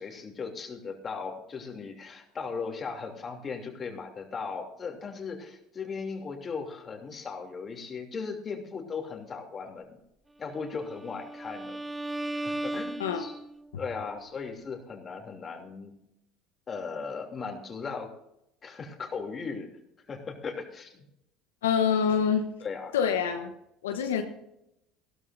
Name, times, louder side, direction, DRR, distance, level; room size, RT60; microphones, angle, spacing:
voice 1, 0.0-10.0 10.4-11.8 12.3-13.3 13.8-15.9 16.7-18.1 18.6-19.7 20.1-21.0 22.6-22.9, left 5 dB, 35° left, 2 dB, 2.9 m, -37 dB
Bowed string instrument, 10.6-13.7, right 1 dB, 10° right, 0.5 m, -36 dB
voice 2, 21.6-22.5 22.9-23.5 23.8-24.2, left 7 dB, 90° left, 5 dB, 1.1 m, -26 dB
16.0 x 12.5 x 2.6 m, 0.82 s
hypercardioid pair, 80°, 0 cm